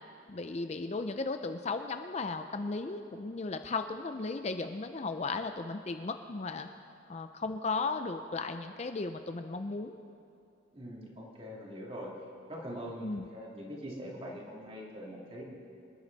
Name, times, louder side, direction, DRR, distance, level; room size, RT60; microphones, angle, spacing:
voice 1, 0.3-6.7 7.1-10.0 13.0-13.3, left 3 dB, 35° left, 8 dB, 0.4 m, -35 dB
voice 2, 10.7-12.1 12.5-15.4, equal, 30° right, -3 dB, 2.6 m, -43 dB
25.5 x 10.5 x 4.0 m, 2.7 s
head